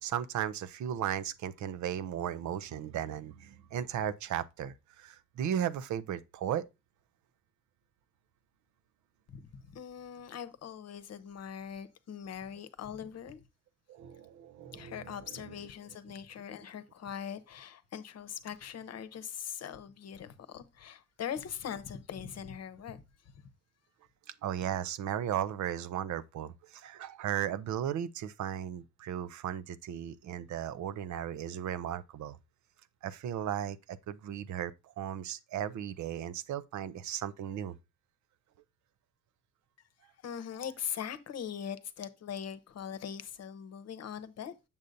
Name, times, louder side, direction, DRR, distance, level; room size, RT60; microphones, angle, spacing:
voice 1, 0.0-6.6 13.9-15.1 24.4-32.4 33.0-37.7, right 10 dB, 70° right, 0.6 m, -36 dB
voice 2, 9.3-13.4 14.7-23.0 23.3-23.4 40.2-44.5, left 8 dB, 55° left, 0.9 m, -41 dB
7.1 x 6.4 x 2.6 m
cardioid pair, 90°, 30 cm